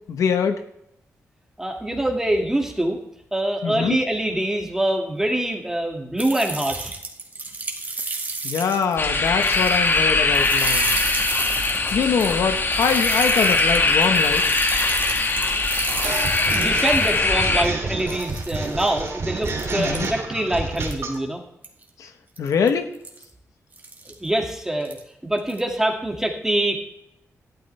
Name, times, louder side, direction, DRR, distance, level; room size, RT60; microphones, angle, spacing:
voice 1, 0.1-0.6 3.6-4.0 8.4-10.9 11.9-14.4 19.8-20.1 22.0-22.1 22.4-22.9, left 6 dB, 90° left, 7 dB, 1.2 m, -23 dB
voice 2, 1.6-3.0 3.3-7.0 15.9-16.0 16.4-21.4 24.1-25.0 25.2-26.8, right 1 dB, 10° right, 1 dB, 2.3 m, -24 dB
sound 1, 6.2-9.0 9.3-10.0 10.3-17.2 17.6-17.7 18.1-18.9 19.4-20.1 20.8-21.1 21.6-21.8 22.4-22.7 23.0-23.2 23.7-24.1 24.8-25.0 25.4-25.6, right 3 dB, 35° right, 2.2 m, -31 dB
sound 2, 9.0-17.6, left 3 dB, 40° left, 1.4 m, -21 dB
sound 3, 16.0-21.2, right 3 dB, 55° right, 2.9 m, -29 dB
14.0 x 12.0 x 3.4 m, 0.76 s
cardioid pair, 95°, 5 cm